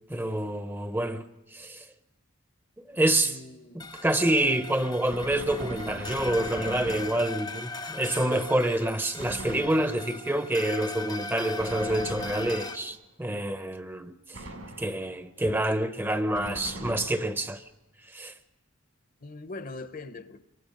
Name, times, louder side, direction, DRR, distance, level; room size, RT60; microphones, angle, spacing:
voice 1, 0.1-1.2 1.5-1.9 2.9-3.4 3.7-14.4 14.8-17.6 18.1-18.3, right 1 dB, 10° right, 0.7 m, -27 dB
voice 2, 3.2-3.9 19.2-20.4, left 3 dB, 45° left, 0.8 m, -41 dB
sound 1, 3.8-12.8, left 2 dB, 20° left, 0.7 m, -39 dB
Gunshot gunfire, 5.1-7.6 9.2-10.2 11.6-13.0 14.3-15.1 16.3-17.5, right 1 dB, 85° right, 7.3 m, -41 dB
28.5 x 23.5 x 5.3 m
head